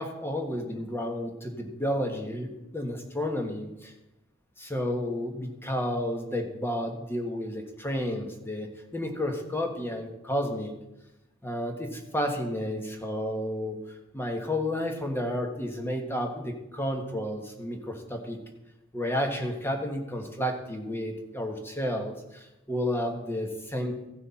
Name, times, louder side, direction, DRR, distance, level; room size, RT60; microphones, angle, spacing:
voice 1, 0.0-3.9 4.6-10.7 11.4-13.8 14.1-18.4 18.9-24.1, left 1 dB, 10° left, 3 dB, 1.3 m, -31 dB
16.0 x 6.3 x 4.2 m, 0.93 s
head